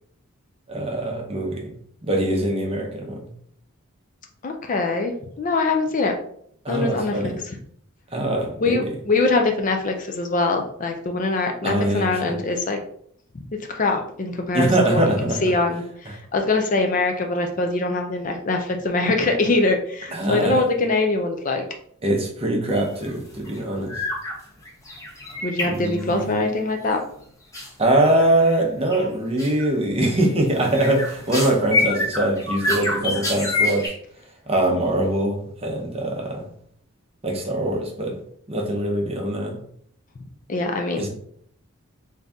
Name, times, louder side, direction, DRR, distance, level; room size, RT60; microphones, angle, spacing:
voice 1, 0.7-1.7 2.0-3.2 6.6-7.4 8.1-8.9 11.6-12.4 14.5-15.5 20.1-20.6 22.0-23.9 25.6-26.4 27.8-33.9 34.5-36.5 37.2-38.2 38.5-39.6 40.9-41.1, right 1 dB, 25° right, 1 dB, 0.7 m, -23 dB
voice 2, 4.4-6.1 6.7-7.3 8.6-12.8 13.7-15.1 15.4-21.6 25.4-27.0 40.5-41.1, left 3 dB, 35° left, 3 dB, 0.4 m, -23 dB
sound 1, 22.7-23.1 23.4-23.6 23.9-24.4 24.6-26.4 27.5-27.7 28.2-28.6 28.9-29.1 29.4-29.7 30.1-33.9, left 2 dB, 15° left, 0.9 m, -27 dB
3.8 x 2.7 x 3.5 m, 0.65 s
head